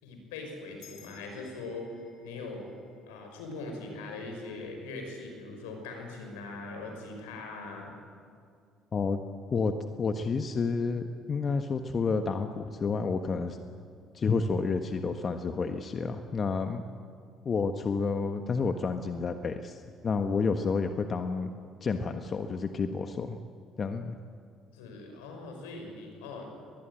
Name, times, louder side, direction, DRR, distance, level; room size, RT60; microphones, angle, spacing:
voice 1, 0.0-2.7 3.1-7.9 20.4-20.5 24.7-26.5, left 3 dB, 85° left, 3 dB, 5.7 m, -41 dB
sound 1, 0.8-5.5, left 7 dB, 65° left, 4.9 m, -60 dB
voice 2, 9.5-13.6 14.1-16.8 17.4-21.5 21.8-23.4 23.8-24.2, left 4 dB, 45° left, 7 dB, 1.4 m, -30 dB
22.5 x 20.5 x 9.0 m, 2.3 s
hypercardioid pair, 55°, 0 cm